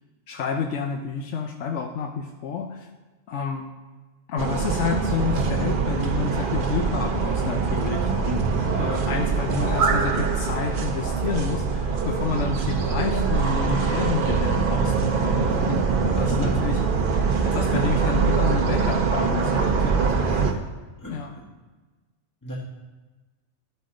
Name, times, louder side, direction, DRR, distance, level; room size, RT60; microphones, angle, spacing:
voice 1, 0.3-2.9 3.3-3.7 4.3-15.9 16.2-17.2 17.4-20.4 21.1-21.3, left 6 dB, 85° left, 3 dB, 1.0 m, -30 dB
sound 1, 4.4-20.5, right 5 dB, 50° right, 0.8 m, -23 dB
voice 2, 16.1-16.5 20.2-20.6 21.0-21.4 22.4-22.6, right 1 dB, 15° left, -5 dB, 1.4 m, -36 dB
12.0 x 5.4 x 3.8 m, 1.3 s
omnidirectional pair, 1.2 m